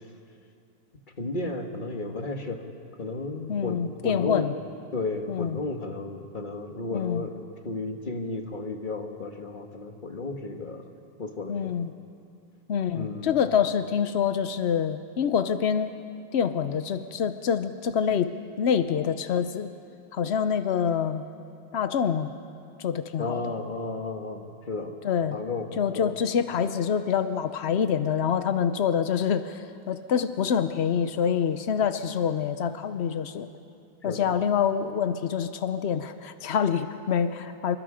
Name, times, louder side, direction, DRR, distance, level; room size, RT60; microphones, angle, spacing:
voice 1, 1.2-2.6 3.0-4.5 4.9-7.3 7.6-10.8 11.2-11.7 12.9-13.3 23.2-25.0 25.3-25.7 25.9-26.1 34.0-34.3, left 3 dB, 50° left, 4 dB, 1.7 m, -33 dB
voice 2, 3.5-4.5 5.3-5.6 6.9-7.3 11.5-11.9 12.7-15.9 16.3-19.7 20.1-21.2 21.7-22.3 22.8-23.5 25.0-25.4 25.8-33.5 34.0-37.8, left 7 dB, 90° left, 10 dB, 1.0 m, -26 dB
27.0 x 23.0 x 5.1 m, 2.5 s
omnidirectional pair, 1.1 m